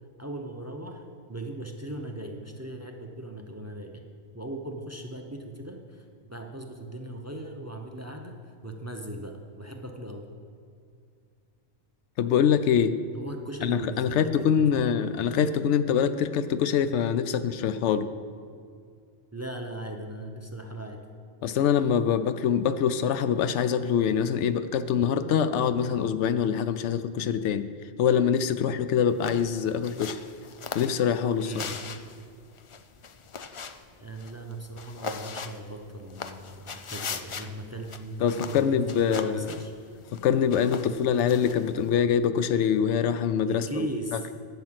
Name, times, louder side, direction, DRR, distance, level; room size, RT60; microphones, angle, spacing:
voice 1, 0.2-4.0 4.3-8.4 8.6-10.3 13.1-15.1 19.3-21.0 31.4-31.7 34.0-40.0 43.5-44.3, right 1 dB, 15° right, 4 dB, 0.7 m, -38 dB
voice 2, 12.2-12.9 13.6-18.1 21.4-27.7 28.0-30.2 30.7-31.5 38.2-39.5 40.1-43.9, left 8 dB, 80° left, 12 dB, 0.9 m, -24 dB
sound 1, 29.1-41.9, left 5 dB, 55° left, 0.3 m, -41 dB
11.5 x 5.7 x 7.9 m, 2.3 s
omnidirectional pair, 1.2 m